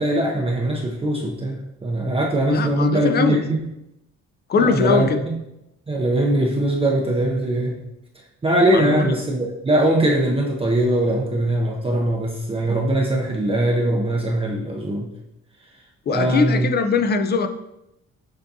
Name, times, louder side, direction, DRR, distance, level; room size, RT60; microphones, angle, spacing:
voice 1, 0.0-1.6 1.8-3.7 4.6-5.4 5.9-7.8 8.4-15.1 16.1-16.7, right 1 dB, 20° right, -1 dB, 0.6 m, -21 dB
voice 2, 2.5-3.5 4.5-5.2 8.7-9.1 16.1-17.5, left 5 dB, 35° left, 9 dB, 0.4 m, -21 dB
6.7 x 2.5 x 2.7 m, 0.87 s
cardioid pair, 90°, 30 cm